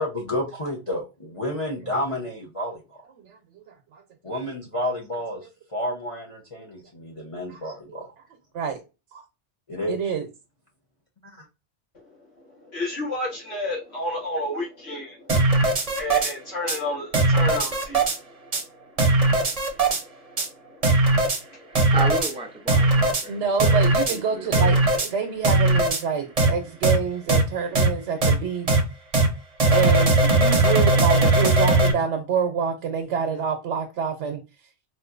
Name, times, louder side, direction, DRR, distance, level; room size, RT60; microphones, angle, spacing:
voice 1, 0.0-2.8 4.2-5.4 5.7-8.1 9.7-10.0, left 1 dB, 35° left, 0.8 m, -30 dB
voice 2, 3.2-3.6 3.9-4.0 6.6-6.7 7.5-7.6 7.9-8.0 8.5-8.8 9.1-9.2 9.9-10.3 23.1-28.8 29.7-34.4, right 6 dB, 90° right, 1.0 m, -27 dB
voice 3, 12.6-18.2 19.0-20.9 21.1-21.2 21.5-21.7, left 1 dB, 65° left, 1.8 m, -32 dB
sound 1, 15.3-16.3 16.7-16.8 17.1-18.2 18.5-18.6 19.0-20.0 20.4-20.5 20.8-21.4 21.8-22.3 22.7-23.2 23.6-24.2 24.5-25.1 25.4-26.0 26.4-26.5 26.8-27.0 27.3-27.4 27.8-27.9 28.2-28.3 28.7-28.8 29.1-29.3 29.6-31.9, right 2 dB, 40° right, 0.7 m, -19 dB
voice 4, 21.7-24.8, right 3 dB, 10° right, 0.3 m, -33 dB
4.3 x 2.5 x 2.5 m
omnidirectional pair, 1.2 m